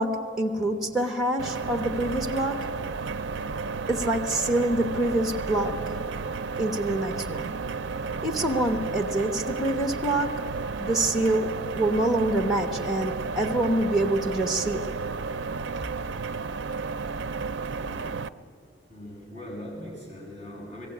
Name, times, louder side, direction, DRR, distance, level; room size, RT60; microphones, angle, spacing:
voice 1, 0.0-2.7 3.9-5.8 6.6-7.5 8.2-10.4 10.8-11.5 11.7-14.9, right 1 dB, ahead, 4 dB, 0.9 m, -26 dB
sound 1, 1.4-18.3, right 4 dB, 60° right, 0.5 m, -32 dB
voice 2, 17.8-18.5 18.9-20.9, left 1 dB, 30° left, -7 dB, 7.6 m, -41 dB
20.5 x 15.5 x 8.6 m, 2.4 s
head